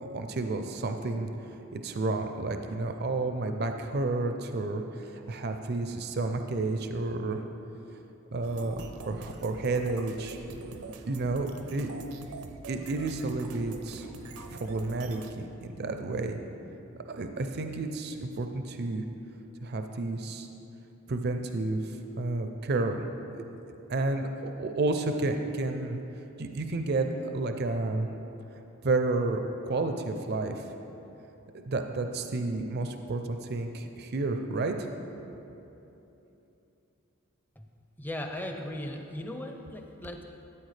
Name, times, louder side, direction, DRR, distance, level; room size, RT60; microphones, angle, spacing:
voice 1, 0.0-1.3 1.7-7.4 8.3-10.4 11.1-11.9 12.7-14.1 14.5-16.4 17.1-19.0 19.6-20.5 21.1-23.0 23.3-26.0 26.4-28.1 28.8-30.7 31.5-34.9, right 2 dB, 45° right, 6 dB, 0.4 m, -31 dB
sound 1, 8.4-15.3, right 3 dB, 85° right, 0.7 m, -44 dB
voice 2, 38.0-40.2, left 1 dB, 10° left, 4 dB, 0.5 m, -37 dB
13.0 x 8.6 x 3.3 m, 3.0 s
head